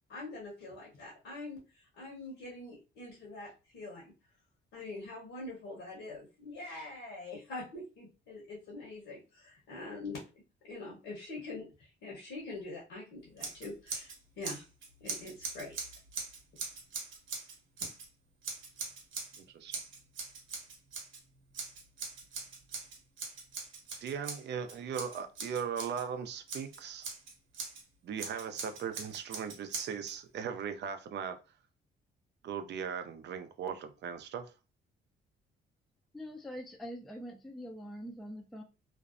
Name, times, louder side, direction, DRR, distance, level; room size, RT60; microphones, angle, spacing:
voice 1, 0.1-4.1 4.7-10.2 10.7-14.6 15.0-15.8, left 2 dB, 75° left, 1.0 m, -44 dB
Scissors, 13.4-14.2 14.4-18.1 18.4-19.4 19.7-21.2 21.5-26.0 26.5-27.8 28.2-30.1, right 4 dB, 80° right, 0.8 m, -42 dB
voice 2, 24.0-27.1 28.0-31.4 32.4-34.5, right 7 dB, 60° right, 0.4 m, -38 dB
voice 3, 36.1-38.6, equal, ahead, 0.4 m, -44 dB
2.5 x 2.0 x 2.4 m
cardioid pair, 90°, 20 cm